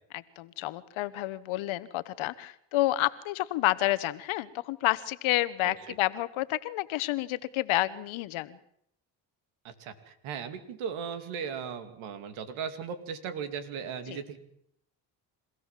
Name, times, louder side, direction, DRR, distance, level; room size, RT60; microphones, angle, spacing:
voice 1, 0.1-8.6 14.1-14.2, left 16 dB, 75° left, 16 dB, 1.3 m, -29 dB
voice 2, 5.6-5.9 9.6-14.4, right 7 dB, 80° right, 10 dB, 2.8 m, -37 dB
27.5 x 16.0 x 7.5 m, 0.72 s
supercardioid pair, 65°, 48 cm